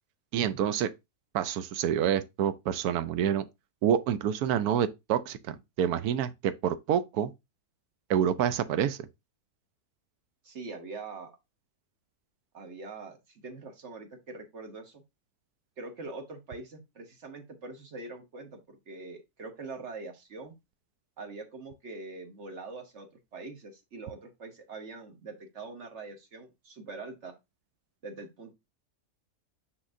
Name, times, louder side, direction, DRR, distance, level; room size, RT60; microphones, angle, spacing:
voice 1, 0.3-0.9 1.3-3.4 3.8-7.3 8.1-9.0, right 9 dB, 75° right, 1.1 m, -27 dB
voice 2, 10.4-11.3 12.5-15.0 15.8-20.5 21.2-27.3 28.0-28.5, right 3 dB, 50° right, 1.3 m, -43 dB
6.3 x 5.8 x 2.6 m
omnidirectional pair, 1.7 m